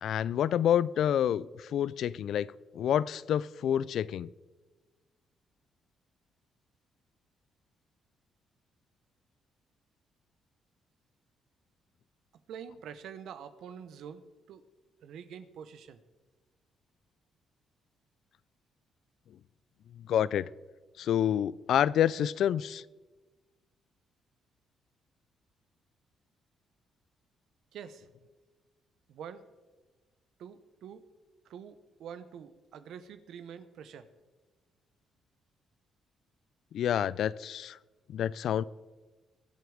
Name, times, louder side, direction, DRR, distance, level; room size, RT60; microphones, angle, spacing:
voice 1, 0.0-4.3 20.1-20.5 21.0-22.8 36.7-37.8 38.1-38.6, left 10 dB, 70° left, 20 dB, 0.4 m, -28 dB
voice 2, 12.5-14.6 15.0-16.0 27.7-28.1 29.1-29.4 30.4-31.0 31.4-34.1, right 8 dB, 75° right, 12 dB, 1.1 m, -46 dB
23.0 x 8.2 x 5.1 m, 1.3 s
cardioid pair, 90°, 0 cm